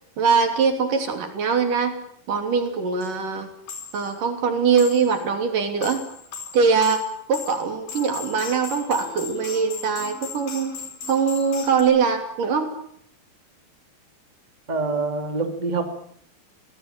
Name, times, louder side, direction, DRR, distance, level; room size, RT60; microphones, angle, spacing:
voice 1, 0.2-2.0 2.3-3.5 3.9-6.1 6.5-10.7 11.1-12.7, right 5 dB, 65° right, 6 dB, 4.5 m, -22 dB
sound 1, 2.7-2.8 3.0-3.1 3.7-4.1 4.8-5.2 5.6-11.8, left 5 dB, 70° left, 6.3 m, -37 dB
voice 2, 14.7-15.8, right 3 dB, 15° right, 5 dB, 2.4 m, -25 dB
25.0 x 18.5 x 9.1 m, 0.65 s
omnidirectional pair, 4.1 m